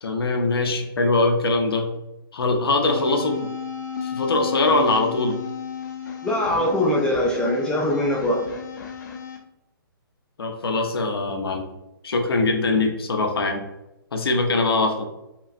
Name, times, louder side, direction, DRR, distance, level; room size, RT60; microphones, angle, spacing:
voice 1, 0.0-1.9 2.3-3.5 4.0-5.3 10.4-11.7 12.0-13.6 14.1-15.1, left 2 dB, 85° left, 3 dB, 0.8 m, -22 dB
sound 1, 2.9-9.4, left 7 dB, 50° left, 0.6 m, -33 dB
voice 2, 6.2-8.4, left 1 dB, 5° left, -2 dB, 0.3 m, -22 dB
5.4 x 2.1 x 2.5 m, 0.91 s
hypercardioid pair, 155°, 12 cm